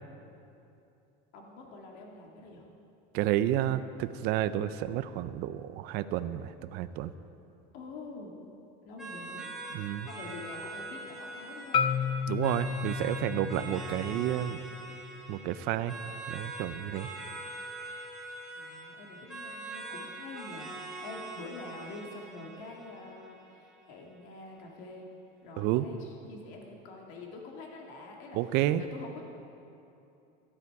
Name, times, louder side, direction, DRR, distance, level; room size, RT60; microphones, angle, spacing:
voice 1, 1.3-2.7 7.7-8.4 8.9-9.5 10.1-11.8 16.8-17.3 18.6-25.1 25.4-29.2, left 3 dB, 60° left, 0 dB, 1.9 m, -46 dB
voice 2, 3.1-7.1 9.7-10.1 12.3-14.6 15.3-15.9 16.3-17.1 25.6-25.8 28.3-28.8, right 13 dB, 50° right, 12 dB, 0.5 m, -30 dB
sound 1, 9.0-24.0, right 2 dB, ahead, 1.7 m, -43 dB
Marimba xylophone, 11.7-15.9, left 7 dB, 25° left, 0.3 m, -33 dB
13.5 x 11.0 x 4.7 m, 2.8 s
cardioid pair, 155°, 21 cm